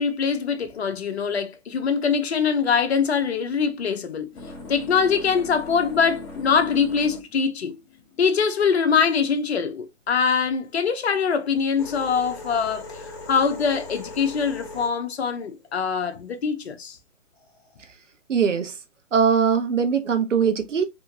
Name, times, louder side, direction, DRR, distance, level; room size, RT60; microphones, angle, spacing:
voice 1, 0.0-4.3 4.7-7.8 8.2-17.0, left 6 dB, 55° left, 0.9 m, -23 dB
sound 1, 3.6-9.8 10.6-16.4 17.4-17.9, left 2 dB, 10° left, 0.6 m, -41 dB
voice 2, 18.3-18.8 19.1-20.9, right 6 dB, 70° right, 0.9 m, -21 dB
3.5 x 2.9 x 2.7 m
figure-of-eight pair, 135°, 38 cm